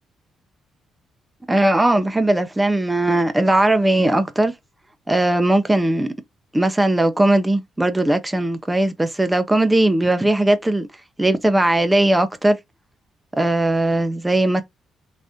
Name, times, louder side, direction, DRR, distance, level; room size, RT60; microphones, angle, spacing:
voice 1, 1.5-4.5 5.1-6.1 6.5-10.9 11.2-12.6 13.3-14.6, right 1 dB, 10° right, 0.5 m, -18 dB
3.4 x 2.5 x 2.6 m
cardioid pair, 90°, 0 cm